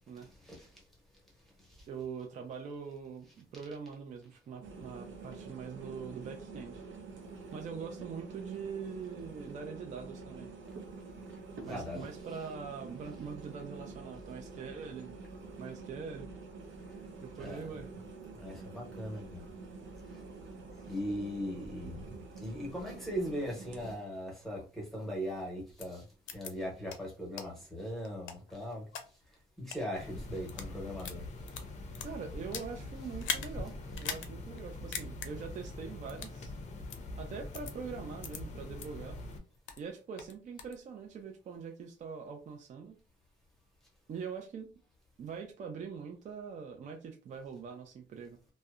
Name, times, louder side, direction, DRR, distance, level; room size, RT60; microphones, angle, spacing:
voice 1, 1.9-6.8 7.5-10.5 11.7-15.1 15.6-16.3 17.2-17.9 32.0-36.5 37.2-39.2 39.8-43.0 44.1-44.7 45.2-48.4, right 6 dB, 40° right, 0.4 m, -43 dB
sound 1, 4.6-24.0, right 3 dB, 90° right, 0.6 m, -47 dB
voice 2, 11.7-12.0 17.4-17.6 18.4-19.4 20.9-22.0 22.4-26.0 26.3-28.8 29.7-31.2, equal, ahead, 0.8 m, -39 dB
sound 2, 25.8-25.9 26.3-26.5 26.9-27.0 27.4-27.5 28.0-29.0 29.6-29.8 30.4-30.7 31.0-32.7 33.2-33.5 33.9-34.3 34.6-34.7 34.9-35.3 36.1-36.4 36.9-37.0 37.5-37.7 38.2-38.4 38.8-38.9 39.3-39.8 40.2-40.8, left 7 dB, 85° left, 0.5 m, -40 dB
sound 3, 30.0-39.4, left 2 dB, 40° left, 0.5 m, -44 dB
2.6 x 2.0 x 2.3 m
wide cardioid pair, 170°, 19 cm